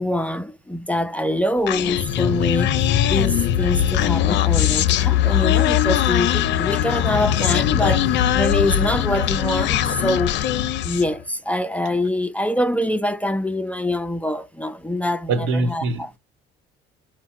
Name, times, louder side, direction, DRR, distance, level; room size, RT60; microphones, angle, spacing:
voice 1, 0.0-2.7 3.1-10.6 10.8-16.1, left 1 dB, 5° left, 0.4 m, -24 dB
Human voice, 1.7-11.1, left 11 dB, 60° left, 0.5 m, -20 dB
voice 2, 15.3-16.2, right 3 dB, 85° right, 0.9 m, -23 dB
4.4 x 2.1 x 4.2 m
cardioid pair, 100°, 21 cm